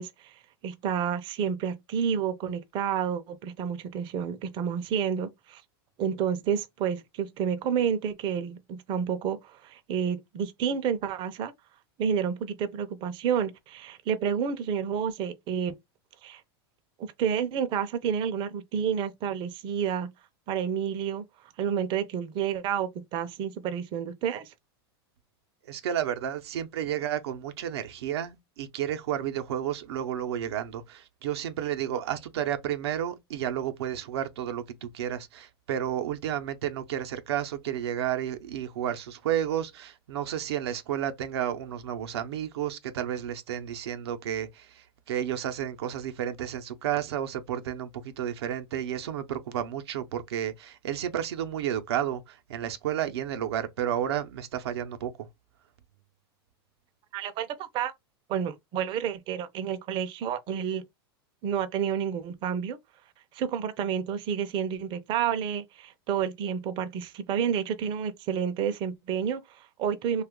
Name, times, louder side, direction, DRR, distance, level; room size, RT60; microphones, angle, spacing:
voice 1, 0.0-5.6 6.0-11.5 12.0-15.8 16.2-16.4 17.0-20.1 20.5-24.5 57.1-57.9 58.3-60.8 61.4-62.8 63.3-70.2, right 8 dB, 35° right, 0.5 m, -30 dB
voice 2, 25.7-55.1, right 10 dB, 85° right, 0.7 m, -31 dB
2.7 x 2.3 x 3.6 m
supercardioid pair, 130°, 13 cm